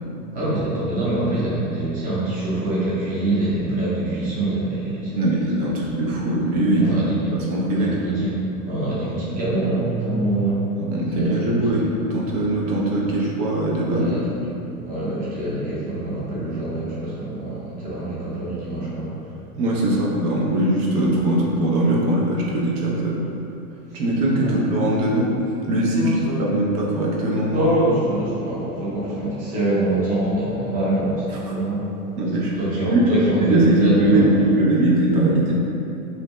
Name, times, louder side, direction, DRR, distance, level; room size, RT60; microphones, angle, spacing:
voice 1, 0.3-5.7 6.8-7.4 7.7-10.7 11.1-11.6 13.0-13.2 13.9-14.3 14.9-19.1 23.9-24.0 24.4-24.6 25.9-26.4 27.5-31.9 32.4-34.4, right 2 dB, 20° right, -9 dB, 0.6 m, -24 dB
voice 2, 5.1-7.0 7.3-8.1 10.8-14.2 19.5-23.2 23.9-25.3 25.7-26.1 26.4-27.7 31.3-31.5 32.2-32.5 32.9-33.0 33.4-35.5, right 1 dB, 70° right, -4 dB, 0.7 m, -21 dB
2.7 x 2.1 x 3.1 m, 2.8 s
hypercardioid pair, 120°, 47 cm